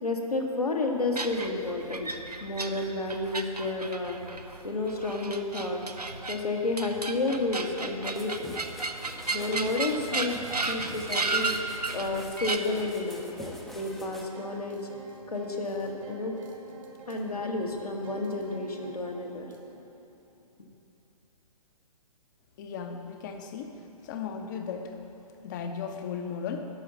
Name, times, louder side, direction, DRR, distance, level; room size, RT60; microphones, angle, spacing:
voice 1, 0.0-2.1 2.4-4.2 4.6-5.8 6.3-8.5 9.3-10.4 10.7-11.5 11.9-14.8 15.3-16.3 17.1-19.5, left 2 dB, 75° left, 1 dB, 1.4 m, -31 dB
sound 1, 1.1-12.6, right 3 dB, 90° right, 0.6 m, -34 dB
sound 2, 8.0-14.3, left 1 dB, ahead, 0.5 m, -46 dB
sound 3, 13.4-19.8, right 1 dB, 55° right, 1.4 m, -48 dB
voice 2, 22.6-23.7 24.0-24.9 25.4-26.6, left 6 dB, 30° left, 5 dB, 0.7 m, -36 dB
11.5 x 5.5 x 7.0 m, 2.8 s
figure-of-eight pair, 125°, 20 cm